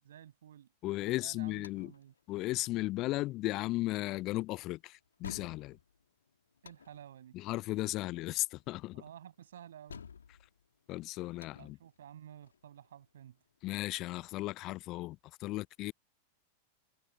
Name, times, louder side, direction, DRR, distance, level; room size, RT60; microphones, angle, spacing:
voice 1, 0.0-0.7 1.0-2.1 6.6-7.4 8.9-10.1 11.6-13.4, right 10 dB, 65° right, 6.9 m, -52 dB
voice 2, 0.8-1.9 2.3-5.8 7.3-9.0 10.9-11.8 13.6-15.9, left 18 dB, 40° left, 0.5 m, -35 dB
sound 1, 1.3-14.3, left 6 dB, 70° left, 2.8 m, -55 dB
figure-of-eight pair, 90°, 0 cm